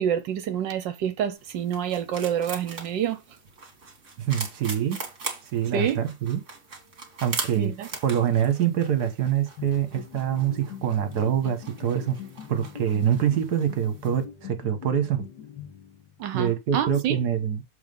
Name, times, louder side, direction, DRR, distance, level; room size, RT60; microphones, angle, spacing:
voice 1, 0.0-3.2 5.7-6.0 7.6-7.9 16.2-17.1, right 9 dB, 75° right, 1.3 m, -27 dB
sound 1, 1.4-14.2, right 4 dB, 40° right, 2.0 m, -41 dB
voice 2, 4.2-5.0 5.5-6.4 7.2-7.7 8.0-12.2 12.5-15.2 16.3-17.6, right 9 dB, 60° right, 1.5 m, -25 dB
sound 2, 9.6-16.3, left 9 dB, 70° left, 1.5 m, -43 dB
7.1 x 3.4 x 5.3 m
omnidirectional pair, 2.0 m